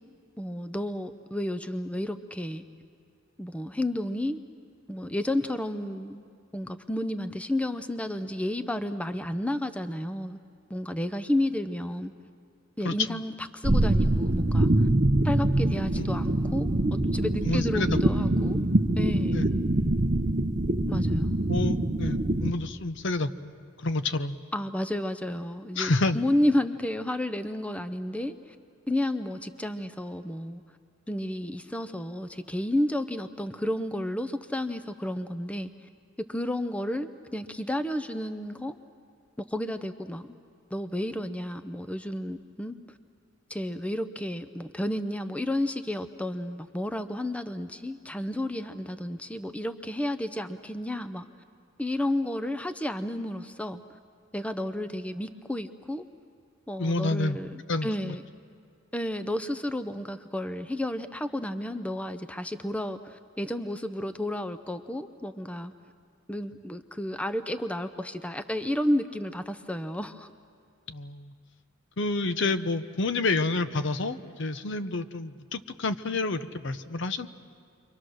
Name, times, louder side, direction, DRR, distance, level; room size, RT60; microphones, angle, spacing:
voice 1, 0.4-2.6 3.4-4.4 4.9-6.2 6.5-10.4 10.7-12.1 12.8-14.9 15.2-18.6 19.0-19.4 20.9-21.3 24.5-28.4 28.9-30.6 31.1-35.7 36.3-38.8 39.4-40.3 40.7-42.8 43.5-51.3 51.8-53.8 54.3-56.0 56.7-58.2 58.9-65.7 66.3-70.3, left 1 dB, 5° left, 10 dB, 0.6 m, -31 dB
voice 2, 12.8-13.2 16.0-16.1 17.4-18.0 19.3-19.5 21.5-24.4 25.8-26.2 56.8-57.4 57.7-58.1 70.9-71.3 72.0-77.3, left 3 dB, 60° left, 11 dB, 0.8 m, -29 dB
sound 1, 13.6-22.5, right 1 dB, 40° right, 0.8 m, -24 dB
29.5 x 24.0 x 6.4 m, 2.3 s
head